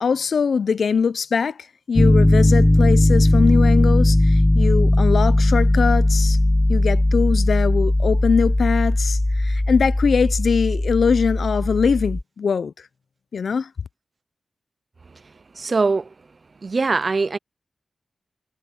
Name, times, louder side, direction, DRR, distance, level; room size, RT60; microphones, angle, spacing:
voice 1, 0.0-1.6 1.9-6.4 6.7-12.7 13.3-13.7, left 6 dB, 70° left, 0.5 m, -22 dB
Piano, 2.0-12.2, left 1 dB, 15° left, 0.7 m, -18 dB
voice 2, 15.5-16.1 16.6-17.4, right 4 dB, 40° right, 0.4 m, -21 dB
wide cardioid pair, 145°, 0 cm